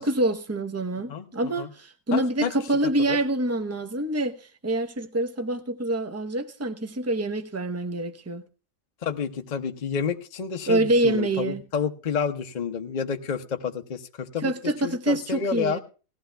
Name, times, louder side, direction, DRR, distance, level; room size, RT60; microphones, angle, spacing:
voice 1, 0.0-8.4 10.7-11.6 14.4-15.8, right 1 dB, 15° right, 0.6 m, -26 dB
voice 2, 2.1-2.5 3.1-3.2 9.0-14.5 14.8-15.8, left 6 dB, 40° left, 0.7 m, -29 dB
18.0 x 15.0 x 2.2 m
omnidirectional pair, 1.4 m